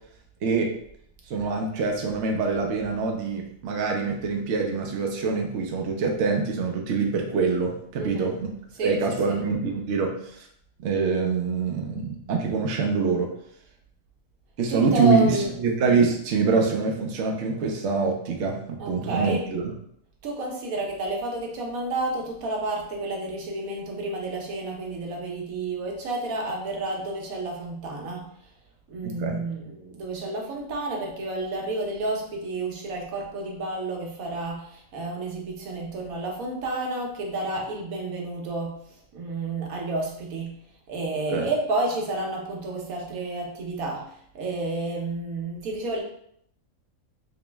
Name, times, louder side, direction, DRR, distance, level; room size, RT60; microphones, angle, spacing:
voice 1, 1.3-8.3 8.8-10.5 10.8-13.3 14.6-19.6 29.0-29.4 41.3-41.5, right 4 dB, 65° right, 1 dB, 0.8 m, -25 dB
voice 2, 8.0-8.4 8.8-9.4 14.7-15.6 18.8-19.5 20.2-28.3 28.9-38.8 39.1-40.6 40.9-46.0, right 2 dB, 80° right, 0 dB, 1.2 m, -30 dB
3.0 x 3.0 x 3.3 m, 0.68 s
omnidirectional pair, 1.5 m